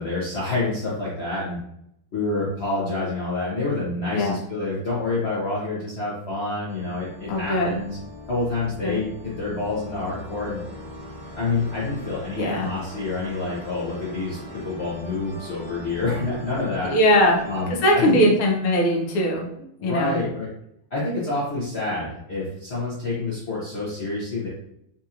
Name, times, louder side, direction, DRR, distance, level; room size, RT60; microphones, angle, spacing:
voice 1, 0.0-1.6 2.1-8.0 8.3-10.6 11.4-16.9 17.5-18.2 19.8-20.5 20.9-24.5, left 3 dB, 60° left, -7 dB, 0.6 m, -27 dB
sound 1, 4.8-6.1 6.7-19.3, left 1 dB, 25° left, 1.0 m, -41 dB
voice 2, 7.3-7.8 8.8-9.0 12.3-12.7 16.9-17.4 17.7-19.5 19.8-20.2, equal, 80° left, 0 dB, 1.6 m, -20 dB
4.3 x 2.8 x 2.4 m, 0.74 s
omnidirectional pair, 2.3 m